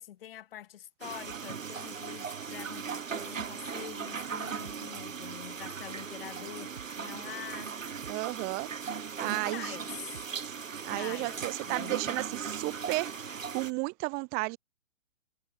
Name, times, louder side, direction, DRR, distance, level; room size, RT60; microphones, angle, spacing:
voice 1, 0.0-7.8 9.3-10.3 10.9-11.4 11.6-12.0, left 11 dB, 45° left, 5.0 m, -45 dB
sound 1, 1.0-13.7, right 6 dB, 75° right, 1.2 m, -38 dB
sound 2, 1.3-11.5, right 8 dB, 55° right, 5.1 m, -53 dB
voice 2, 8.1-8.7 9.2-9.8 10.8-14.6, right 30 dB, 25° right, 1.8 m, -33 dB
figure-of-eight pair, 125°, 39 cm